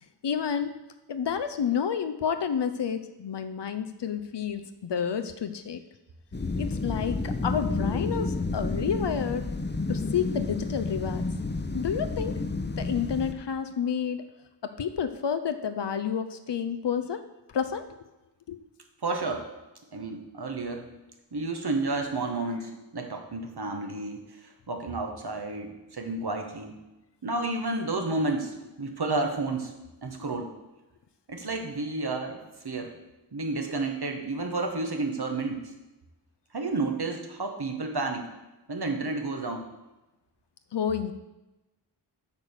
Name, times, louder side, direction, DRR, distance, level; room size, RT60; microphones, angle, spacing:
voice 1, 0.2-0.8 1.1-5.8 6.6-9.4 9.9-11.3 11.7-12.4 12.8-14.3 14.6-17.2 17.5-18.0 18.5-18.6 40.7-41.1, left 7 dB, 80° left, 9 dB, 0.6 m, -30 dB
sound 1, 6.3-13.3, left 3 dB, 25° left, 0.7 m, -30 dB
voice 2, 19.0-19.5 19.9-20.9 21.3-26.8 27.2-29.7 30.0-30.5 31.3-32.9 33.3-35.7 36.5-38.3 38.7-39.7, right 3 dB, 65° right, 4 dB, 1.3 m, -31 dB
8.3 x 4.7 x 6.6 m, 1.0 s
wide cardioid pair, 55°, 41 cm